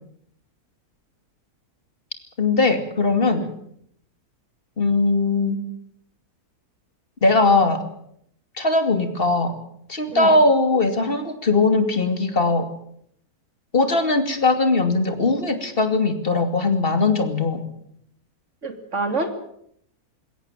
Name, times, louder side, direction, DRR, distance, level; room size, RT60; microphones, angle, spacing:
voice 1, 2.4-3.5 4.8-5.6 7.2-7.9 8.6-9.5 9.9-12.7 13.7-17.6, left 3 dB, 35° left, 8 dB, 2.7 m, -20 dB
voice 2, 18.6-19.3, right 3 dB, 50° right, 7 dB, 3.2 m, -27 dB
21.5 x 17.0 x 9.1 m, 0.69 s
omnidirectional pair, 1.6 m